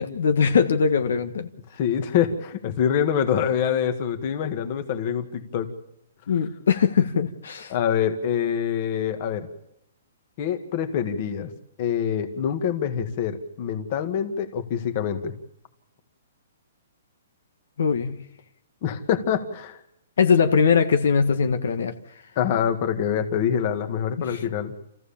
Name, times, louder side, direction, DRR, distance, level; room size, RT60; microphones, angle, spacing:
voice 1, 0.0-1.5 6.3-7.7 17.8-18.2 20.2-21.9 24.2-24.4, left 6 dB, 70° left, 7 dB, 1.6 m, -21 dB
voice 2, 1.7-5.7 7.7-9.5 10.4-11.5 11.8-15.3 18.8-19.8 22.4-24.7, left 8 dB, 35° left, 7 dB, 2.0 m, -25 dB
28.5 x 15.0 x 7.2 m, 0.80 s
hypercardioid pair, 170°, 0 cm